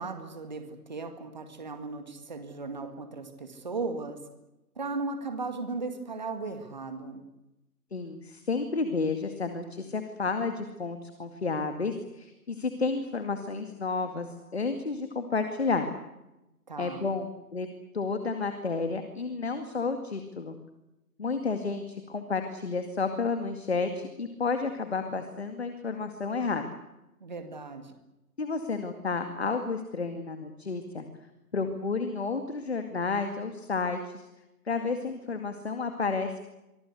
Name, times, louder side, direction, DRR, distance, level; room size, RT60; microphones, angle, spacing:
voice 1, 0.0-4.2 4.8-7.3 16.7-17.1 27.2-27.9, right 3 dB, 30° right, 8 dB, 2.1 m, -36 dB
voice 2, 7.9-14.3 14.5-15.9 16.8-17.7 17.9-20.6 21.2-26.6 28.4-31.1 31.5-34.3 34.7-36.4, left 4 dB, 40° left, 7 dB, 2.3 m, -31 dB
25.0 x 23.0 x 8.2 m, 0.96 s
figure-of-eight pair, 175°, 47 cm